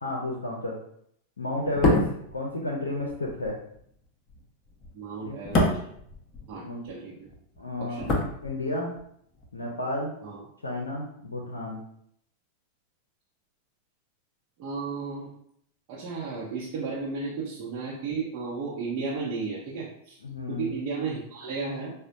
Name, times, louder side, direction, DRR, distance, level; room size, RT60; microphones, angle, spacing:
voice 1, 0.0-0.7 1.4-2.0 2.3-3.6 5.2-5.4 6.6-6.8 7.6-8.0 8.4-8.9 9.5-10.1 10.6-11.8 20.2-20.7, left 1 dB, 75° left, 0 dB, 0.5 m, -31 dB
sound 1, 1.6-7.0 7.2-9.1 9.3-9.5, left 2 dB, 30° left, 0.7 m, -28 dB
voice 2, 4.9-5.8 6.5-7.3 7.8-8.1 10.2-10.4 14.6-15.3 15.9-20.2 20.5-21.9, right 4 dB, 40° right, -6 dB, 0.7 m, -34 dB
4.9 x 2.1 x 2.6 m, 0.70 s
figure-of-eight pair, 90°, 0 cm